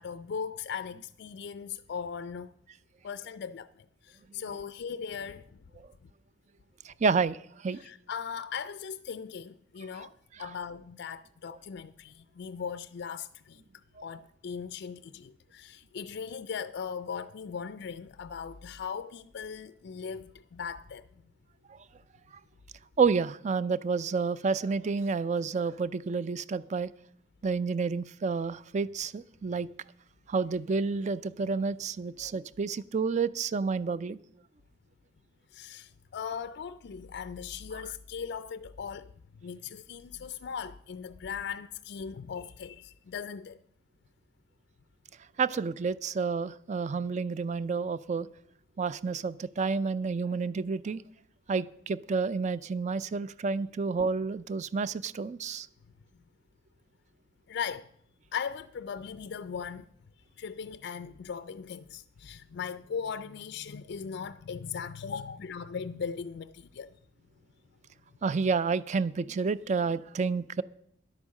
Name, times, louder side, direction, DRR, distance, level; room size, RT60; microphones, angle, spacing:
voice 1, 0.0-2.5 3.0-5.6 7.7-10.1 10.4-13.6 14.0-21.1 35.5-39.1 39.4-43.6 57.5-57.9 58.3-59.9 60.4-67.0, left 6 dB, 60° left, 0.4 m, -39 dB
voice 2, 6.9-7.4 7.6-7.8 10.4-10.5 23.0-26.9 27.4-29.7 30.3-34.2 45.4-48.3 48.8-51.0 51.5-55.7 68.2-70.6, right 4 dB, 40° right, 0.4 m, -29 dB
11.0 x 8.4 x 6.3 m
head